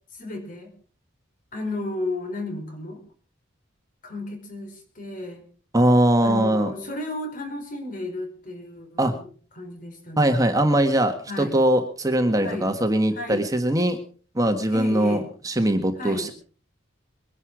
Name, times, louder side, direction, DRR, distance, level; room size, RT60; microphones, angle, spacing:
voice 1, 0.2-0.7 1.5-3.0 4.0-5.4 6.2-9.3 9.6-10.5 11.3-11.6 12.4-12.7 13.1-13.5 14.7-15.3 16.0-16.3, left 2 dB, 45° left, 4 dB, 5.0 m, -33 dB
voice 2, 5.7-6.7 9.0-9.1 10.2-14.0 14.3-16.3, right 1 dB, 20° right, 6 dB, 1.5 m, -21 dB
22.5 x 11.0 x 5.0 m, 0.41 s
head